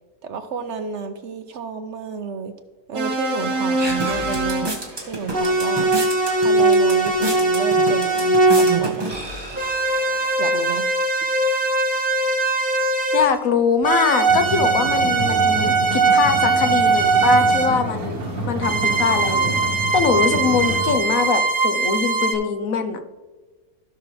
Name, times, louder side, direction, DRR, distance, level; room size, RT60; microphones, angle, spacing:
voice 1, 0.2-2.5 2.9-5.9 6.4-9.1 10.4-10.9, right 6 dB, 60° right, 8 dB, 0.9 m, -31 dB
sound 1, 2.9-4.8 5.3-8.9 9.5-13.5 13.8-17.8 18.6-22.3, right 3 dB, 35° right, 1.1 m, -20 dB
sound 2, 3.4-10.3, right 1 dB, 15° right, 1.3 m, -31 dB
voice 2, 13.1-19.6 19.9-23.0, left 6 dB, 70° left, 8 dB, 1.2 m, -22 dB
Marrakesh Ambient, 14.3-21.0, right 1 dB, 80° right, 1.9 m, -28 dB
16.0 x 5.9 x 3.2 m, 1.3 s
omnidirectional pair, 1.6 m